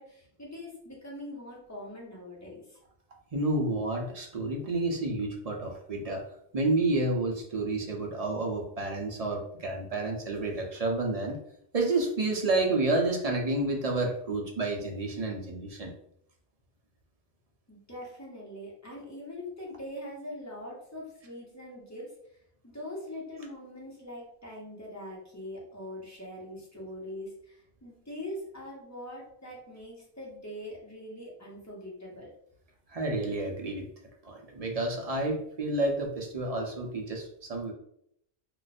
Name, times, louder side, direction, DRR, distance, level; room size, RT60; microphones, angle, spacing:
voice 1, 0.0-2.8 17.7-22.1 22.6-32.3, left 1 dB, 15° left, -5 dB, 1.0 m, -42 dB
voice 2, 3.3-6.2 6.5-11.4 11.7-15.9 32.9-33.8 34.2-37.7, right 2 dB, 45° right, 1 dB, 0.6 m, -30 dB
2.5 x 2.3 x 4.0 m, 0.71 s
omnidirectional pair, 1.0 m